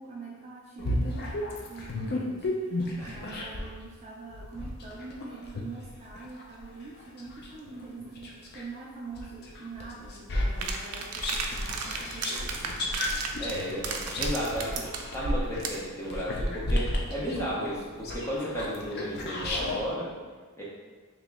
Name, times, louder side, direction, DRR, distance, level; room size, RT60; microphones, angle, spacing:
voice 1, 0.0-12.8, right 3 dB, 30° right, -4 dB, 0.4 m, -44 dB
sound 1, 0.8-3.8 4.3-8.7 9.2-19.8, left 1 dB, 45° left, 0.5 m, -33 dB
sound 2, 10.6-15.9, right 3 dB, 90° right, 0.4 m, -34 dB
voice 2, 13.4-14.8 15.1-20.1 20.6-20.7, equal, 10° left, -7 dB, 0.8 m, -33 dB
3.0 x 2.9 x 3.5 m, 1.4 s
head